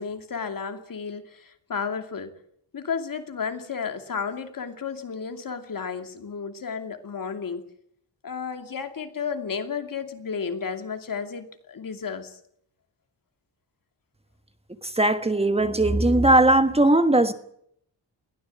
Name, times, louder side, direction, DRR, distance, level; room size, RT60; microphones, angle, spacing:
voice 1, 0.0-2.4 2.7-7.6 8.2-12.4, left 6 dB, 50° left, 2.7 m, -32 dB
voice 2, 14.8-17.3, right 1 dB, 15° right, 1.4 m, -19 dB
21.5 x 16.5 x 8.4 m
wide cardioid pair, 160°, 44 cm